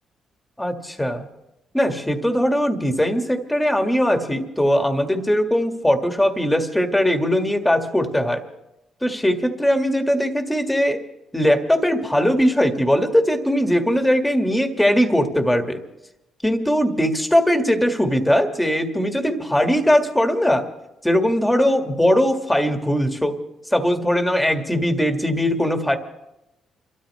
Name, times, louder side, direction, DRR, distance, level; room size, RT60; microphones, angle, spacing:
voice 1, 0.6-1.3 1.7-8.4 9.0-11.0 11.3-15.8 16.4-20.6 21.0-23.4 23.7-26.0, equal, 5° left, 5 dB, 1.8 m, -20 dB
28.5 x 13.0 x 3.2 m, 0.92 s
cardioid pair, 90°, 0 cm